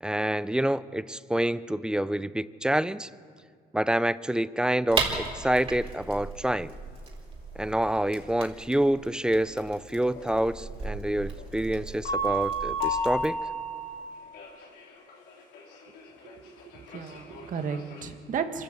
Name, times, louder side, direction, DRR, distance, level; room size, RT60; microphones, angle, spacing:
voice 1, 0.0-3.1 3.7-6.7 7.6-13.4, right 1 dB, 5° right, 16 dB, 0.5 m, -27 dB
sound 1, 4.9-13.3, right 4 dB, 35° right, 3.9 m, -37 dB
sound 2, 10.1-10.3 10.9-11.4 11.8-14.0 14.3-18.0, right 1 dB, 85° left, 4.0 m, -32 dB
voice 2, 16.3-18.6, right 6 dB, 50° right, 7 dB, 1.7 m, -34 dB
25.5 x 13.0 x 8.0 m, 2.1 s
cardioid pair, 110°, 17 cm